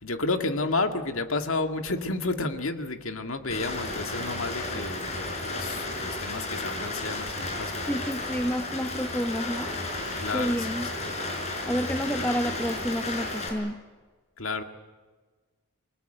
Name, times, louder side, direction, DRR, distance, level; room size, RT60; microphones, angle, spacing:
voice 1, 0.0-8.0 10.2-10.6 14.4-14.6, left 3 dB, 70° left, 6 dB, 2.0 m, -31 dB
Rain, 3.5-13.5, left 2 dB, 30° left, 5.2 m, -33 dB
voice 2, 7.9-9.7 10.3-10.9 11.6-13.8, equal, 5° left, 8 dB, 1.0 m, -29 dB
27.5 x 20.0 x 9.1 m, 1.4 s
head